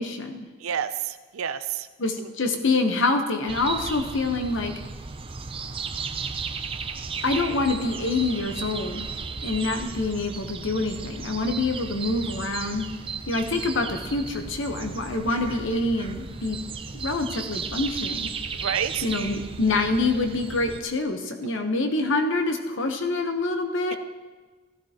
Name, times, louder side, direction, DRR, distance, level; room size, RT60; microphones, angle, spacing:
voice 1, 0.0-0.5 2.0-4.7 7.2-9.1 9.4-12.9 13.3-16.6 16.9-18.3 18.6-18.7 19.0-24.0, left 3 dB, 60° left, 5 dB, 1.0 m, -26 dB
voice 2, 0.6-1.9 2.2-2.3 18.6-19.1, right 8 dB, 85° right, 12 dB, 0.5 m, -29 dB
sound 1, 3.5-20.8, right 5 dB, 25° right, 0.5 m, -35 dB
16.0 x 13.5 x 2.9 m, 1.3 s
head